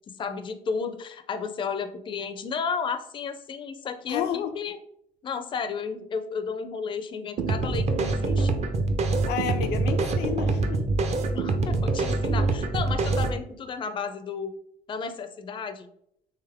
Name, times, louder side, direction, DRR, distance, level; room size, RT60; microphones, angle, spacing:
voice 1, 0.2-4.8 5.2-8.6 11.3-14.6 14.9-15.9, left 5 dB, 30° left, 0.4 m, -33 dB
voice 2, 4.1-4.5 9.3-10.9, left 8 dB, 85° left, 0.5 m, -30 dB
sound 1, 7.4-13.4, right 3 dB, 40° right, 0.5 m, -25 dB
3.5 x 3.1 x 3.4 m
cardioid pair, 110°, 17 cm